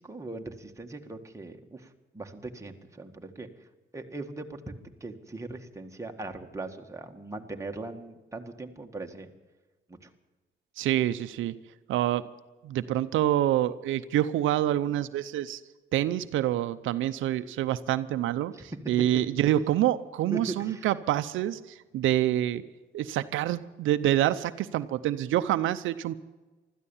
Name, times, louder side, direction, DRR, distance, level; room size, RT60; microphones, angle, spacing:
voice 1, 0.0-3.5 3.9-9.3 9.9-10.1 18.5-18.8 20.3-20.9, right 2 dB, 15° right, 3 dB, 1.8 m, -39 dB
voice 2, 10.8-11.5 11.9-12.2 12.6-15.6 15.9-22.6 22.9-26.1, right 13 dB, 85° right, 11 dB, 0.7 m, -27 dB
15.5 x 13.0 x 7.2 m, 1.2 s
cardioid pair, 90°, 20 cm